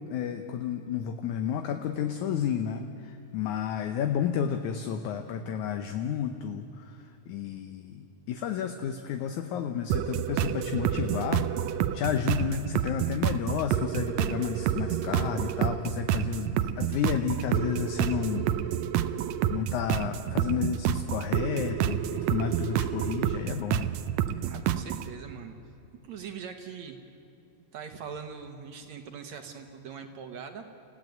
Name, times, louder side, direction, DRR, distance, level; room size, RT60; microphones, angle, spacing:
voice 1, 0.1-7.0 7.3-11.5 11.9-18.5 19.5-23.9, left 8 dB, 70° left, 7 dB, 2.1 m, -31 dB
sound 1, 9.9-25.1, right 10 dB, 80° right, 1.6 m, -29 dB
voice 2, 24.4-25.6 26.0-27.0 27.7-30.6, right 6 dB, 60° right, 5 dB, 2.4 m, -41 dB
29.0 x 16.0 x 9.3 m, 2.7 s
omnidirectional pair, 3.9 m